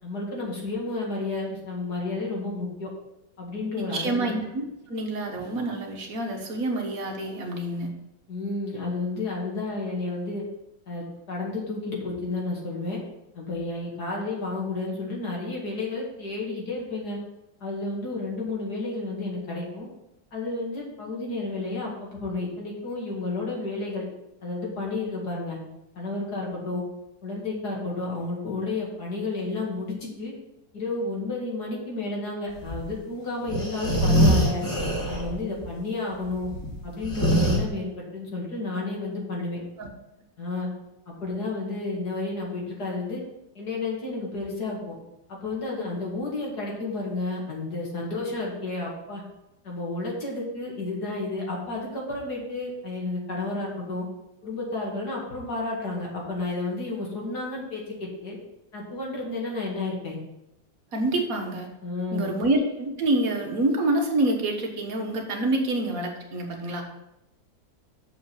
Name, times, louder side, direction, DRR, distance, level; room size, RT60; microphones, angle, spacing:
voice 1, 0.0-2.9 3.4-4.3 8.3-10.4 10.9-13.0 13.3-17.2 17.6-19.9 20.3-24.1 24.4-25.6 26.0-26.8 27.2-30.3 30.7-34.6 35.1-36.5 36.8-39.6 40.4-40.7 41.1-43.2 43.5-44.9 45.3-49.2 49.6-54.1 54.4-58.4 58.7-60.2 61.8-62.3, left 2 dB, 55° left, -3 dB, 2.7 m, -31 dB
voice 2, 3.8-7.9 39.8-39.9 60.9-61.7 62.1-66.8, right 2 dB, 50° right, 2 dB, 1.6 m, -27 dB
sound 1, 32.6-32.9 33.5-35.4 35.6-35.7 36.3-37.6, equal, 10° left, 2.2 m, -23 dB
6.8 x 5.2 x 7.1 m, 0.90 s
omnidirectional pair, 2.1 m